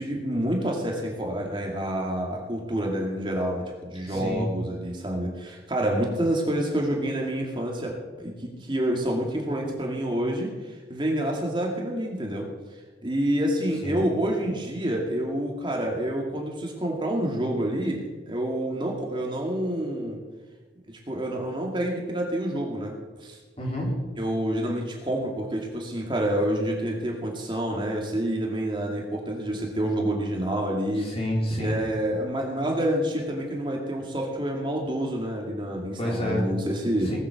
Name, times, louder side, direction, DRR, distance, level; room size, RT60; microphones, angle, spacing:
voice 1, 0.0-12.5 13.0-20.2 20.9-23.4 24.2-31.1 31.6-37.1, right 1 dB, 25° right, -1 dB, 2.3 m, -28 dB
voice 2, 4.0-4.5 13.8-14.1 23.6-24.0 30.9-31.8 36.0-36.5 37.0-37.2, left 1 dB, 35° left, -3 dB, 4.4 m, -28 dB
19.0 x 7.7 x 7.1 m, 1.3 s
head